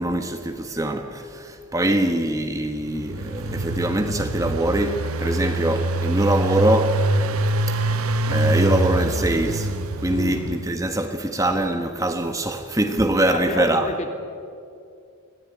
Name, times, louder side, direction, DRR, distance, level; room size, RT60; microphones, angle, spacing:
voice 1, 0.0-7.0 7.8-9.7 10.0-13.9, right 1 dB, 15° right, 1.2 m, -23 dB
Engine, 2.8-10.8, right 2 dB, 75° right, 1.1 m, -24 dB
voice 2, 10.1-10.4 13.3-14.1, left 2 dB, 35° left, 2.9 m, -29 dB
25.5 x 17.5 x 9.6 m
head